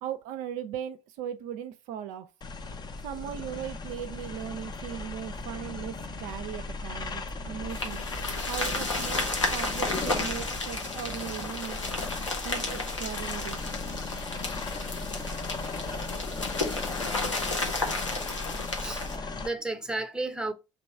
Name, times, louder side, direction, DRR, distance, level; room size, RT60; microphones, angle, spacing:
voice 1, 0.0-2.3 3.0-11.8 12.4-13.6 14.1-14.3, right 10 dB, 55° right, 0.4 m, -38 dB
sound 1, 2.4-19.5, left 3 dB, 25° left, 0.7 m, -37 dB
sound 2, 7.7-19.2, left 2 dB, 90° left, 0.7 m, -33 dB
voice 2, 18.8-20.5, right 2 dB, 5° right, 0.8 m, -34 dB
3.0 x 2.8 x 4.4 m
figure-of-eight pair, 55°, 16 cm